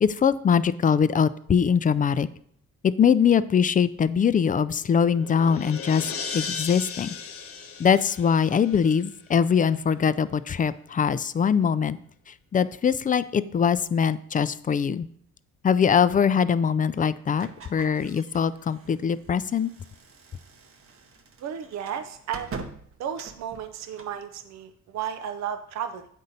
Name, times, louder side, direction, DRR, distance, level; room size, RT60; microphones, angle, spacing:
voice 1, 0.0-2.3 2.8-6.1 6.3-7.1 7.8-12.0 12.5-15.1 15.6-19.7, left 7 dB, 30° left, 15 dB, 0.4 m, -22 dB
sound 1, 4.7-9.2, left 5 dB, 50° left, 0.9 m, -37 dB
sound 2, 17.4-24.2, right 4 dB, 45° right, 0.9 m, -44 dB
voice 2, 21.4-22.6 23.0-26.1, right 8 dB, 60° right, 8 dB, 0.6 m, -33 dB
8.2 x 5.4 x 4.0 m, 0.64 s
cardioid pair, 90°, 30 cm